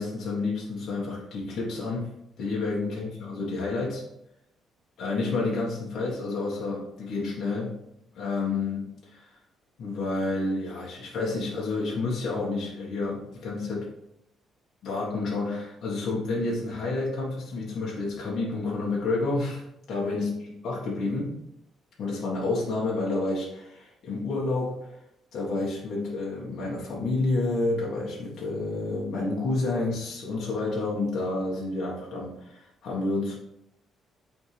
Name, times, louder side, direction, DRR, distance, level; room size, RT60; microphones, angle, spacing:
voice 1, 0.0-2.1 2.4-4.0 5.0-7.8 8.1-9.3 9.8-13.9 14.8-21.4 22.0-24.9 25.3-33.3, left 3 dB, 55° left, -4 dB, 1.4 m, -29 dB
8.6 x 3.7 x 3.3 m, 0.81 s
cardioid pair, 140°, 0 cm